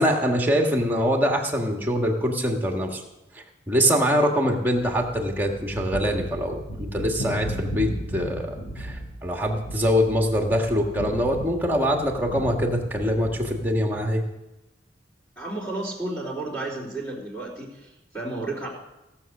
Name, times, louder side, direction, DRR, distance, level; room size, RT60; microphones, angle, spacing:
voice 1, 0.0-3.0 3.7-14.2, equal, 10° right, 2 dB, 1.6 m, -24 dB
sound 1, 4.8-13.7, equal, 45° left, 3.8 m, -36 dB
voice 2, 15.4-18.7, right 2 dB, 15° left, -7 dB, 3.5 m, -32 dB
16.0 x 7.2 x 6.6 m, 0.98 s
head